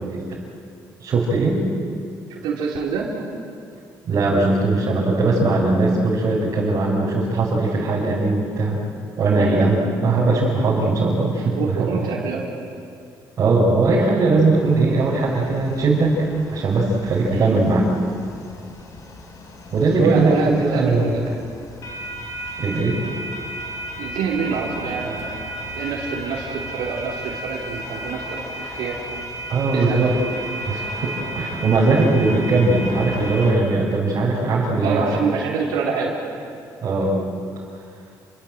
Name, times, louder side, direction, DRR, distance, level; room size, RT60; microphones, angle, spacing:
voice 1, 0.0-0.4 1.0-1.6 4.1-8.8 9.2-11.9 13.4-16.1 16.5-17.8 19.7-20.3 20.6-21.1 22.6-23.0 29.5-30.1 30.7-35.0 36.8-37.2, right 3 dB, 45° right, -6 dB, 5.5 m, -19 dB
voice 2, 2.3-3.2 9.4-9.8 11.5-12.6 17.3-17.6 19.7-21.3 24.0-29.0 29.7-30.1 30.6-30.7 34.8-36.2, right 5 dB, 90° right, -3 dB, 4.3 m, -26 dB
sound 1, 14.5-33.5, right 1 dB, 45° left, 4.8 m, -34 dB
29.5 x 23.0 x 7.8 m, 2.4 s
cardioid pair, 130°, 7 cm